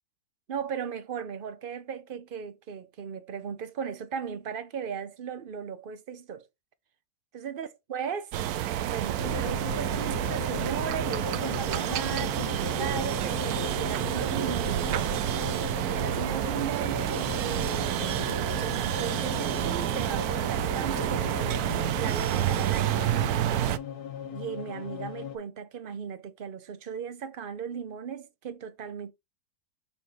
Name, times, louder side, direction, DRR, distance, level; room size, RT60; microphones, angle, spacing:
voice 1, 0.5-6.5 7.3-8.3 8.9-15.2 15.6-18.1 18.6-23.0 24.3-29.1, right 7 dB, 45° right, 0.7 m, -37 dB
sound 1, 8.3-23.8, right 12 dB, 70° right, 1.0 m, -29 dB
sound 2, 9.2-25.4, left 9 dB, 75° left, 1.4 m, -38 dB
7.0 x 3.7 x 4.3 m
omnidirectional pair, 1.8 m